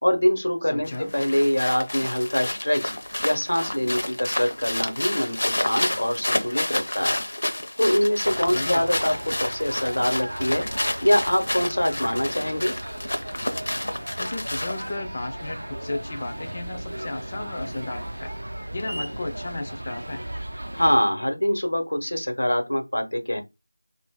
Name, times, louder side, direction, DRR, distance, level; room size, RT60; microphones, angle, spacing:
voice 1, 0.0-2.9 3.2-7.2 7.8-10.7 11.0-12.7 20.7-23.4, equal, 85° left, 1.1 m, -24 dB
voice 2, 0.6-1.1 8.5-8.9 14.2-18.3 18.7-20.2, left 2 dB, 30° left, 0.3 m, -34 dB
sound 1, 0.9-15.0, left 1 dB, 70° left, 0.7 m, -30 dB
sound 2, 8.2-21.0, right 1 dB, 85° right, 0.4 m, -36 dB
2.9 x 2.5 x 3.6 m
figure-of-eight pair, 170°, 0 cm